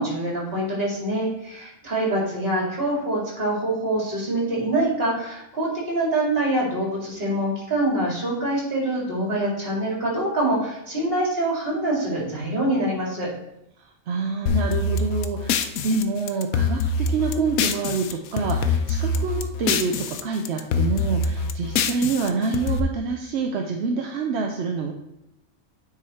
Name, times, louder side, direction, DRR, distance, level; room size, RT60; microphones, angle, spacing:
voice 1, 0.0-13.3, right 1 dB, 45° right, -3 dB, 2.5 m, -25 dB
voice 2, 14.1-24.9, right 4 dB, 60° right, 2 dB, 0.8 m, -27 dB
sound 1, 14.5-18.1 18.4-20.2 20.5-22.8, left 4 dB, 85° left, 1.0 m, -24 dB
9.4 x 3.9 x 4.2 m, 0.85 s
omnidirectional pair, 1.4 m